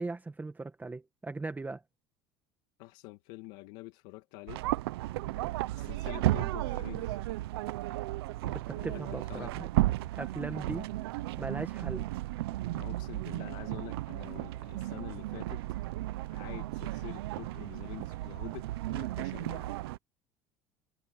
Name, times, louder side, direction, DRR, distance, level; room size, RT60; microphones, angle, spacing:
voice 1, 0.0-1.8 8.4-9.7 10.2-10.9 11.4-12.1, right 3 dB, 15° right, 1.4 m, -38 dB
voice 2, 2.8-4.6 5.7-7.2 8.7-9.7 10.7-10.9 12.0-12.2 12.7-15.6 15.9-19.8, left 21 dB, 75° left, 2.3 m, -47 dB
sound 1, 4.5-20.0, right 17 dB, 90° right, 0.9 m, -34 dB
supercardioid pair, 105°, 13 cm